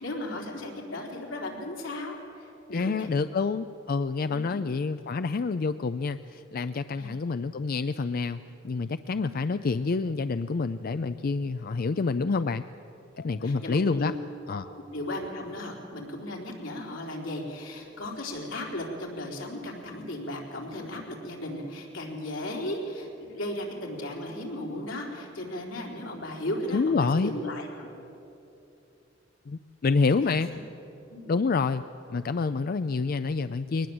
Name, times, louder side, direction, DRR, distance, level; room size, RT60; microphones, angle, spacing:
voice 1, 0.0-3.1 4.3-4.6 6.9-7.1 9.2-9.3 13.2-14.2 14.5-14.6 14.9-27.9 30.2-30.4 31.1-31.3, left 1 dB, 85° left, 0 dB, 4.0 m, -36 dB
voice 2, 2.7-12.6 13.2-14.1 14.5-14.7 26.7-27.3 29.5-30.5 31.3-31.8 32.1-33.9, left 4 dB, 50° left, 12 dB, 0.4 m, -27 dB
22.0 x 19.5 x 7.8 m, 2.9 s
head